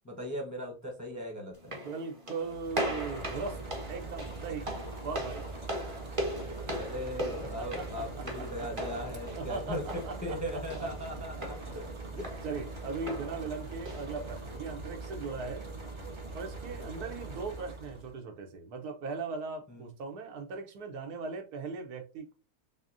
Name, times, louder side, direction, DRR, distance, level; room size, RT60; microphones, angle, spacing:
voice 1, 0.0-1.7 6.7-12.3 12.8-12.9 16.8-17.1 19.7-19.8, equal, 15° left, 0.6 m, -39 dB
sound 1, 1.5-14.6, equal, 25° right, 0.9 m, -40 dB
voice 2, 1.8-3.6 3.9-4.7 5.0-5.5 7.4-8.7 9.3-10.9 11.4-11.5 12.4-15.6 16.3-22.3, right 4 dB, 85° right, 1.4 m, -39 dB
sound 2, 2.4-18.2, right 3 dB, 45° right, 0.3 m, -42 dB
6.2 x 2.1 x 2.5 m
omnidirectional pair, 1.6 m